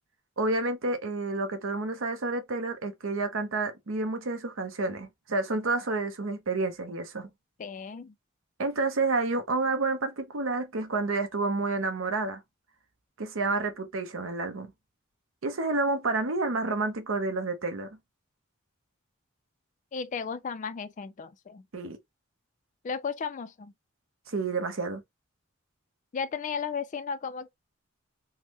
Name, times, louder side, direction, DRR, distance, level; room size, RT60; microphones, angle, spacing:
voice 1, 0.4-7.3 8.6-12.4 13.2-14.7 15.4-18.0 21.7-22.0 24.3-25.0, right 3 dB, 70° right, 0.7 m, -29 dB
voice 2, 7.6-8.1 19.9-21.6 22.8-23.7 26.1-27.5, left 6 dB, 40° left, 0.3 m, -34 dB
3.5 x 2.1 x 2.9 m
head